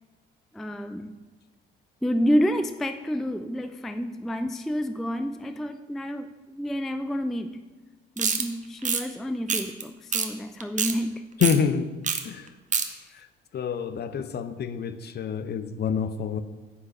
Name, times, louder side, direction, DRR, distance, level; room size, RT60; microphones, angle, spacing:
voice 1, 0.5-1.2 2.0-7.6 8.2-11.2 12.8-13.1, equal, ahead, 10 dB, 0.4 m, -29 dB
sound 1, 8.2-8.4 8.8-9.0 9.5-9.8 10.1-10.3 10.6-10.9 11.4-11.6 12.0-12.2 12.5-12.9, right 5 dB, 25° right, 1.1 m, -25 dB
voice 2, 11.4-11.9 12.2-12.5 13.5-16.4, left 7 dB, 35° left, 12 dB, 0.7 m, -27 dB
9.6 x 5.8 x 6.5 m, 1.3 s
figure-of-eight pair, 50°, 29 cm